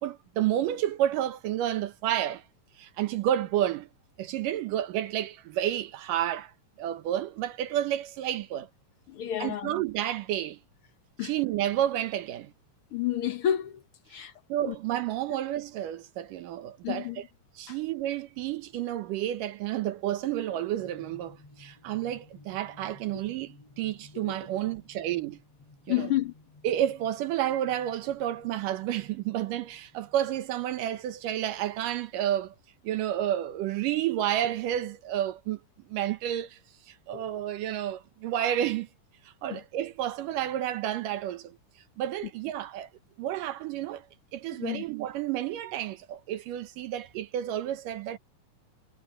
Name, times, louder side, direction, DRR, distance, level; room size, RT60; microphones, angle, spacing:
voice 1, 0.0-2.4 2.8-3.9 4.2-6.5 6.8-8.7 9.4-10.6 11.2-12.5 14.1-17.2 17.6-25.4 25.9-26.1 26.6-32.5 32.8-35.6 35.9-36.6 36.9-38.9 39.4-41.6 42.0-42.9 43.2-44.1 44.3-48.2, right 12 dB, 80° right, 2.5 m, -30 dB
voice 2, 9.1-9.7 11.2-11.3 12.9-13.8 14.1-14.3 14.7-14.8 16.8-17.2 17.7-17.8 24.2-24.4 25.9-26.3 37.1-37.2 39.5-39.6 44.6-44.8, left 11 dB, 65° left, 1.4 m, -30 dB
sound 1, 20.8-31.9, left 2 dB, 50° left, 9.3 m, -56 dB
omnidirectional pair, 3.8 m